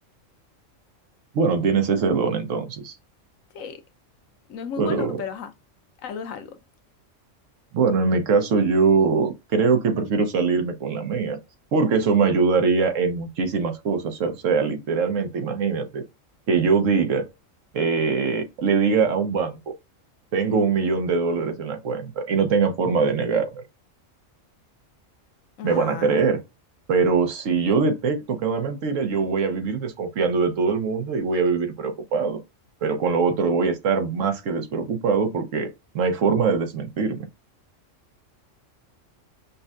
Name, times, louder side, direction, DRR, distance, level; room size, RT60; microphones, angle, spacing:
voice 1, 1.3-2.9 4.8-5.2 7.7-11.4 11.7-16.0 16.5-17.2 17.7-19.7 20.3-23.6 25.6-26.4 26.9-32.4 32.8-35.7 35.9-37.3, right 5 dB, 75° right, 1.2 m, -22 dB
voice 2, 4.5-5.5 6.0-6.6 25.6-26.2, left 6 dB, 85° left, 1.1 m, -34 dB
5.3 x 2.1 x 2.5 m
omnidirectional pair, 1.3 m